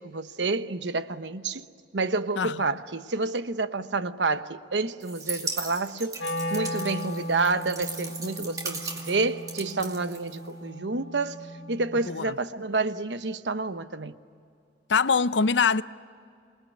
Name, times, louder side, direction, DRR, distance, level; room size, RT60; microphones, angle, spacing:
voice 1, 0.0-1.7 1.9-6.2 6.5-11.4 11.7-14.1, right 3 dB, 85° right, 1.0 m, -29 dB
voice 2, 2.4-2.8 12.1-12.3 14.9-15.8, left 5 dB, 90° left, 0.6 m, -23 dB
sound 1, 5.0-10.7, right 3 dB, 20° right, 2.5 m, -37 dB
Wind instrument woodwind instrument, 6.1-12.2, equal, 65° left, 2.6 m, -37 dB
27.5 x 20.5 x 9.4 m
head